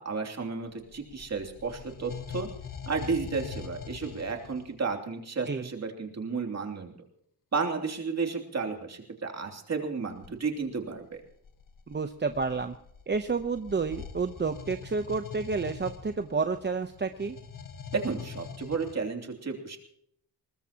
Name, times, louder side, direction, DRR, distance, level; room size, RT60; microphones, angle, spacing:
voice 1, 0.0-2.5 2.9-7.1 7.5-11.2 17.9-19.8, right 4 dB, 45° right, 3 dB, 3.0 m, -32 dB
sound 1, 0.7-4.8 10.1-10.4 11.2-18.9, left 7 dB, 55° left, 1.3 m, -43 dB
voice 2, 11.9-12.8 13.1-17.4, right 4 dB, 30° right, 8 dB, 0.9 m, -30 dB
22.0 x 19.5 x 3.0 m, 0.68 s
cardioid pair, 95°, 37 cm